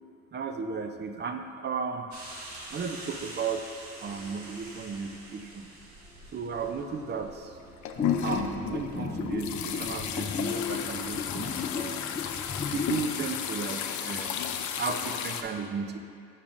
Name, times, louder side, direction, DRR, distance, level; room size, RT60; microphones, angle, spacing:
voice 1, 0.3-2.1 2.7-5.7 6.3-7.6 8.2-11.9 12.7-14.4 14.7-16.0, right 5 dB, 35° right, 6 dB, 0.5 m, -34 dB
sound 1, 2.1-9.5, right 1 dB, 70° right, 1.4 m, -46 dB
sound 2, 7.6-15.4, left 8 dB, 70° left, 0.5 m, -33 dB
sound 3, 8.0-13.0, left 5 dB, 20° left, 0.3 m, -35 dB
7.2 x 6.7 x 2.5 m, 2.4 s
cardioid pair, 90°, 30 cm